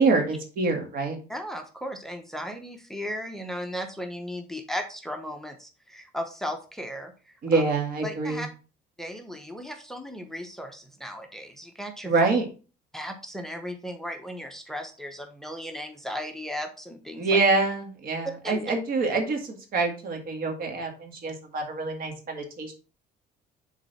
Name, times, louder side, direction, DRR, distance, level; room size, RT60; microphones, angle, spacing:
voice 1, 0.0-1.2 7.4-8.4 12.1-12.4 17.2-22.7, right 3 dB, 60° right, 4 dB, 1.8 m, -25 dB
voice 2, 1.3-7.6 8.0-8.5 9.0-12.1 12.9-17.3 18.4-18.6, equal, ahead, 5 dB, 0.8 m, -36 dB
6.8 x 3.8 x 4.2 m, 0.35 s
cardioid pair, 110°, 17 cm